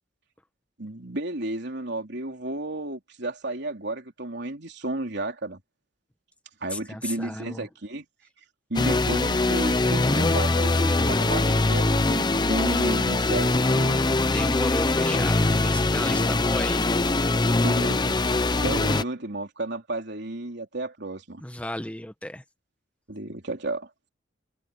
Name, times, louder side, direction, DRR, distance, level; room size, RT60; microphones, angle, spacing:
voice 1, 0.8-5.6 6.6-8.0 8.7-14.0 17.5-21.4 23.1-23.9, right 2 dB, 65° right, 3.7 m, -33 dB
voice 2, 6.7-7.7 14.2-16.9 21.4-22.4, left 1 dB, 5° left, 1.2 m, -34 dB
sound 1, 8.7-19.0, left 2 dB, 25° left, 0.8 m, -22 dB
head